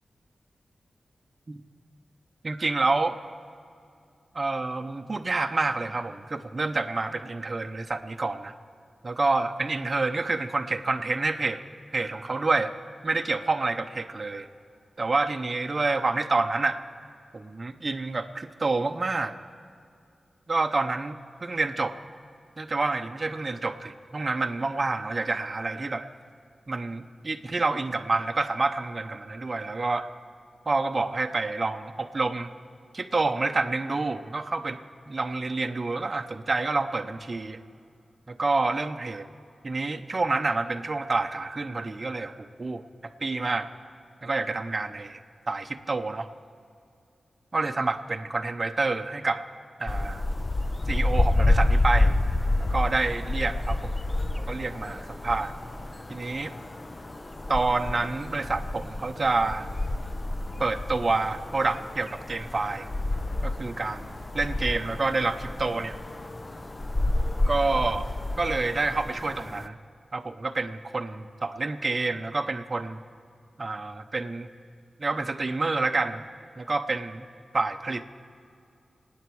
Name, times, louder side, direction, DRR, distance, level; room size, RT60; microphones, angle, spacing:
voice 1, 2.4-3.2 4.3-8.5 9.0-11.6 11.9-12.7 13.0-14.5 15.0-16.8 17.3-19.3 20.5-21.9 22.6-26.1 26.7-30.1 30.7-32.5 32.9-34.8 35.1-37.6 38.3-39.3 39.6-43.7 44.2-45.2 45.5-46.3 47.5-49.4 49.8-50.2 50.9-52.2 52.6-53.9 54.5-55.5 56.1-56.5 57.5-59.7 60.6-62.9 63.4-66.0 67.5-68.1 68.4-69.8 70.1-73.0 73.6-74.5 75.0-76.2 76.6-77.2 77.5-78.0, right 3 dB, 40° right, 6 dB, 0.7 m, -28 dB
sound 1, 49.9-69.7, left 2 dB, 25° left, 0.5 m, -29 dB
26.5 x 9.4 x 4.7 m, 2.4 s
wide cardioid pair, 95°, 0 cm